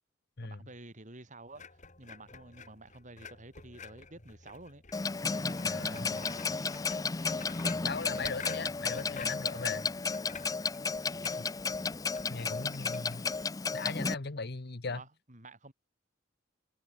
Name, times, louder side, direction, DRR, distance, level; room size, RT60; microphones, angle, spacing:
voice 1, 0.4-4.8 5.3-6.7 14.8-15.7, right 2 dB, 40° right, 4.2 m, -51 dB
sound 1, 1.5-13.4, left 5 dB, 40° left, 4.1 m, -51 dB
Clock, 4.9-14.1, left 4 dB, 20° left, 0.4 m, -33 dB
voice 2, 5.6-6.2 7.8-9.9 11.4-11.5 12.3-13.3 13.7-15.0, left 4 dB, 60° left, 1.1 m, -38 dB
head